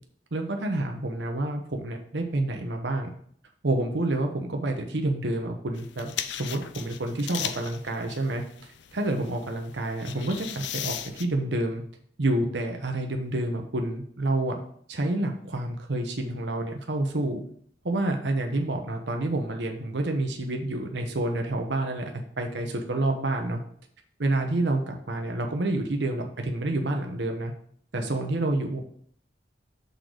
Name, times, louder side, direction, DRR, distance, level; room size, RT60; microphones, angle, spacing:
voice 1, 0.3-3.1 3.6-8.4 8.9-11.8 12.2-14.6 14.9-17.4 17.8-22.1 22.4-23.6 24.2-27.5 27.9-28.8, right 2 dB, 75° right, 3 dB, 0.9 m, -28 dB
sound 1, 5.7-11.2, left 10 dB, 85° left, 0.5 m, -37 dB
6.7 x 3.9 x 6.3 m, 0.62 s
head